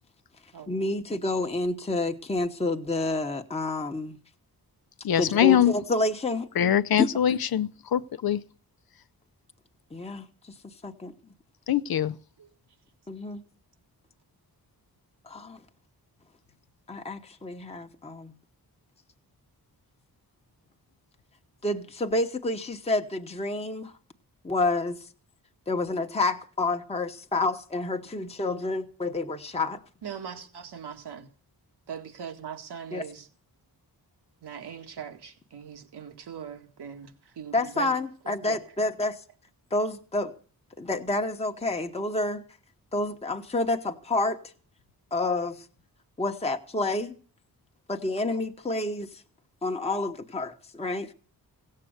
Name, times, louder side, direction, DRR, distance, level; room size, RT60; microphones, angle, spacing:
voice 1, 0.7-4.2 5.2-6.5 7.0-7.1 9.9-10.3 10.6-11.1 13.1-13.4 15.3-15.6 16.9-18.3 21.6-23.9 24.4-25.0 25.7-29.8 32.9-33.0 37.5-39.2 39.7-40.3 40.8-42.4 42.9-44.4 45.1-45.7 46.2-47.2 47.9-49.1 49.6-51.1, left 2 dB, 15° left, 1.1 m, -29 dB
voice 2, 5.0-5.8 6.5-8.4 11.7-12.2, left 10 dB, 65° left, 0.7 m, -23 dB
voice 3, 30.0-31.3 31.9-33.3 34.4-37.9 38.2-38.6, right 7 dB, 90° right, 2.1 m, -40 dB
17.0 x 7.6 x 7.9 m
wide cardioid pair, 110°, 38 cm